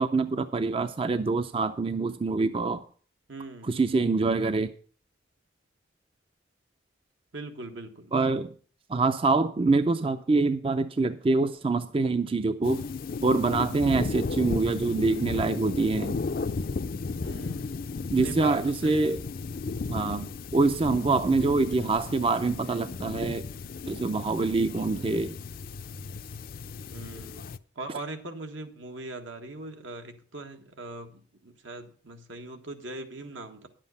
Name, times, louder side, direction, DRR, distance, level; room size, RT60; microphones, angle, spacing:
voice 1, 0.0-2.8 3.7-4.7 8.1-8.5 8.9-12.8 13.2-16.2 18.1-19.2 19.9-23.5 23.9-25.4, right 3 dB, 30° right, 11 dB, 0.4 m, -25 dB
voice 2, 3.3-3.8 7.3-8.1 17.2-19.2 26.9-33.7, right 2 dB, 80° right, 5 dB, 1.5 m, -41 dB
sound 1, 12.6-27.6, left 4 dB, 50° left, 0.4 m, -35 dB
10.5 x 7.6 x 5.4 m, 0.43 s
head